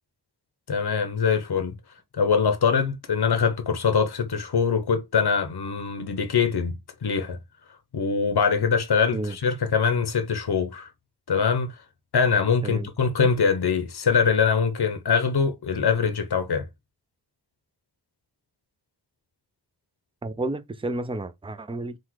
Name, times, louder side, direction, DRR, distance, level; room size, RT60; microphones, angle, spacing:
voice 1, 0.7-1.8 2.1-7.4 7.9-10.9 11.3-11.7 12.1-16.7, left 6 dB, 65° left, 0.8 m, -23 dB
voice 2, 20.2-22.0, right 2 dB, 15° right, 0.5 m, -31 dB
3.9 x 2.4 x 4.6 m
wide cardioid pair, 50°, 42 cm